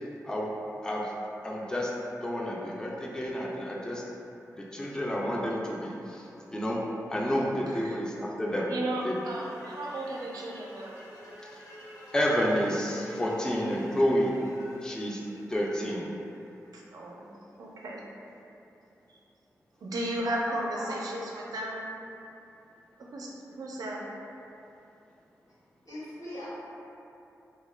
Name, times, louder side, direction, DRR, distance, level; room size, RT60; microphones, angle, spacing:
voice 1, 1.4-1.9 2.2-4.0 4.5-6.8 7.1-8.7 9.0-9.1 11.4-11.6 12.1-14.3 14.8-15.2 15.5-16.1, equal, 10° left, -3 dB, 0.3 m, -30 dB
voice 2, 7.7-8.0 8.7-11.0 16.7-18.0 19.1-19.2 19.8-21.9 23.0-24.1, right 1 dB, 85° right, -2 dB, 0.4 m, -35 dB
sound 1, 8.8-16.9, equal, 90° left, 0.5 m, -49 dB
voice 3, 20.8-21.1 25.8-26.5, left 1 dB, 75° left, -11 dB, 1.2 m, -40 dB
2.2 x 2.1 x 3.1 m, 2.8 s
cardioid pair, 65°, 6 cm